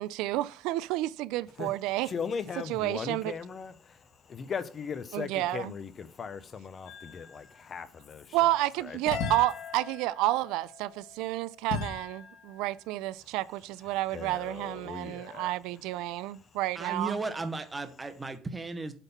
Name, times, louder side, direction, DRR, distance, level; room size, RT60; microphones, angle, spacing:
voice 1, 0.0-2.1 2.7-3.3 5.1-5.7 8.3-17.2, right 16 dB, 90° right, 0.3 m, -30 dB
voice 2, 2.0-9.0 14.1-15.5 16.3-16.4, left 6 dB, 30° left, 0.6 m, -39 dB
sound 1, 6.9-7.6 9.1-12.7, left 6 dB, 90° left, 1.6 m, -39 dB
voice 3, 16.7-18.9, right 3 dB, 15° right, 0.7 m, -35 dB
8.1 x 3.6 x 5.7 m
cardioid pair, 170°, 0 cm